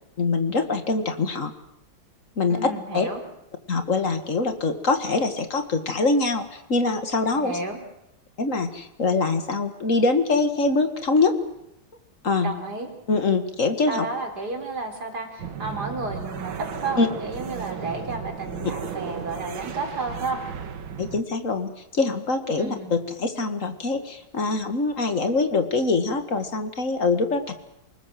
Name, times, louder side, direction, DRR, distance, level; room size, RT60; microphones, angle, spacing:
voice 1, 0.2-1.5 2.4-2.6 2.9-3.1 3.7-7.6 8.4-11.3 12.2-12.5 13.1-14.0 17.0-17.1 21.0-27.6, left 3 dB, 40° left, 8 dB, 2.1 m, -24 dB
voice 2, 2.5-3.2 7.3-7.8 12.4-12.9 13.9-20.4 22.6-22.9, right 3 dB, 50° right, 3 dB, 4.3 m, -32 dB
sound 1, 15.4-21.2, right 7 dB, 75° right, 2.2 m, -35 dB
28.0 x 19.5 x 7.6 m, 0.84 s
omnidirectional pair, 2.2 m